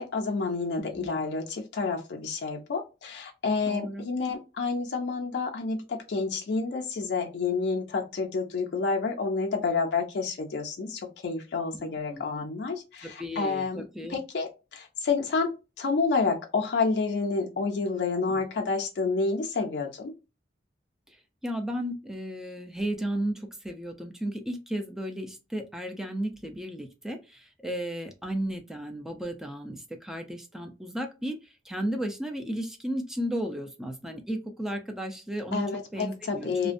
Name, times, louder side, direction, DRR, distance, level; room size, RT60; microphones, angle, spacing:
voice 1, 0.0-13.8 14.1-15.5 15.8-20.1 35.5-36.7, left 4 dB, 65° left, 1 dB, 0.4 m, -29 dB
voice 2, 0.8-1.1 3.7-4.0 11.7-12.5 13.0-14.2 18.3-18.4 21.1-21.2 21.4-31.4 31.6-35.7 35.9-36.5, equal, 5° right, 3 dB, 0.3 m, -34 dB
2.4 x 2.1 x 2.4 m, 0.28 s
head